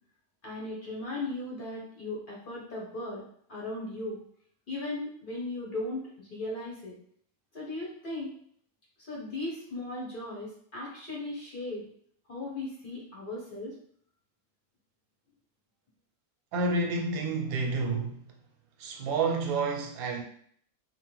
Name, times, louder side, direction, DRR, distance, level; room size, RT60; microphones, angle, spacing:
voice 1, 0.4-3.2 3.5-4.2 4.7-7.0 7.5-8.3 9.0-11.9 12.3-13.7, left 2 dB, 50° left, -4 dB, 0.7 m, -37 dB
voice 2, 16.5-18.2 18.8-20.2, right 3 dB, 90° right, 2 dB, 1.1 m, -29 dB
2.9 x 2.2 x 3.0 m, 0.62 s
omnidirectional pair, 1.5 m